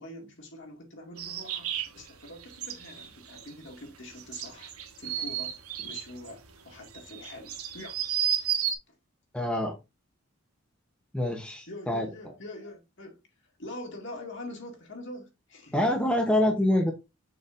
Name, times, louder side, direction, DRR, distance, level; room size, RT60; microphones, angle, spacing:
voice 1, 0.0-4.7 5.0-8.1 8.9-9.0 11.7-13.2 13.6-15.9, left 1 dB, 55° left, 2.1 m, -44 dB
sound 1, 1.2-8.7, right 9 dB, 90° right, 1.2 m, -33 dB
voice 2, 9.3-9.8 11.1-12.1 15.7-16.9, left 1 dB, 5° left, 0.9 m, -25 dB
6.7 x 5.3 x 2.6 m
head